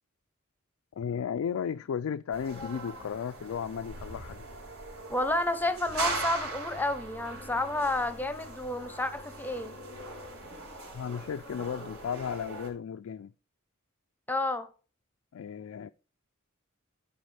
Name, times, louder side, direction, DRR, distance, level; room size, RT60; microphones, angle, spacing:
voice 1, 1.0-4.5 10.9-13.3 15.3-15.9, left 7 dB, 75° left, 0.3 m, -34 dB
sound 1, 2.3-12.7, right 2 dB, 80° right, 3.9 m, -40 dB
voice 2, 5.1-9.7 14.3-14.7, left 1 dB, 10° left, 0.8 m, -30 dB
13.0 x 5.5 x 3.3 m
head